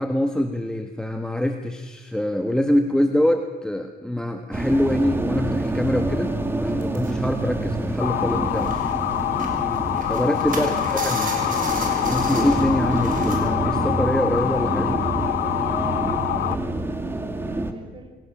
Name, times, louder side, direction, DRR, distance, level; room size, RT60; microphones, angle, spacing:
voice 1, 0.0-6.3 6.6-8.7 10.1-11.3 12.1-14.9, left 1 dB, 5° left, 5 dB, 1.4 m, -24 dB
sound 1, 4.5-17.7, right 2 dB, 15° right, 2.2 m, -27 dB
sound 2, 6.8-8.0 8.3-13.4, right 4 dB, 55° right, 6.3 m, -35 dB
Motor vehicle (road) / Siren, 8.0-16.5, left 14 dB, 70° left, 1.1 m, -25 dB
voice 2, 16.3-18.2, right 3 dB, 30° right, 4 dB, 4.8 m, -42 dB
26.5 x 17.5 x 7.3 m, 1.3 s
cardioid pair, 110°, 17 cm